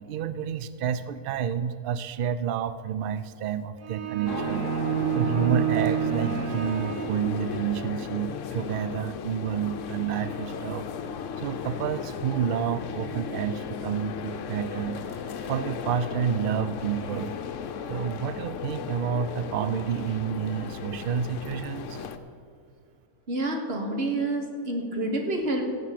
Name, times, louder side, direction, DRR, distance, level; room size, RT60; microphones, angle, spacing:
voice 1, 0.0-4.7 5.1-10.9 11.4-15.0 15.4-17.3 17.9-22.0, right 8 dB, 90° right, 13 dB, 0.4 m, -29 dB
sound 1, 3.8-7.8, right 8 dB, 75° right, 1.1 m, -29 dB
sound 2, 4.3-22.2, left 7 dB, 65° left, 1.0 m, -36 dB
voice 2, 23.3-25.6, right 2 dB, 45° right, 2 dB, 1.6 m, -28 dB
15.5 x 7.9 x 5.9 m, 2.2 s
omnidirectional pair, 1.5 m